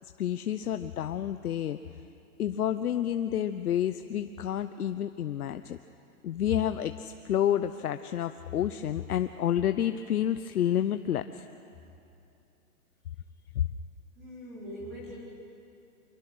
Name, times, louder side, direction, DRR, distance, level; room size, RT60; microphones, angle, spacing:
voice 1, 0.0-1.8 2.4-5.8 6.2-11.5 13.5-13.7, left 10 dB, 70° left, 10 dB, 0.8 m, -29 dB
voice 2, 14.1-15.2, equal, 5° right, -6 dB, 0.7 m, -42 dB
25.5 x 22.0 x 6.3 m, 2.7 s
hypercardioid pair, 180°, 46 cm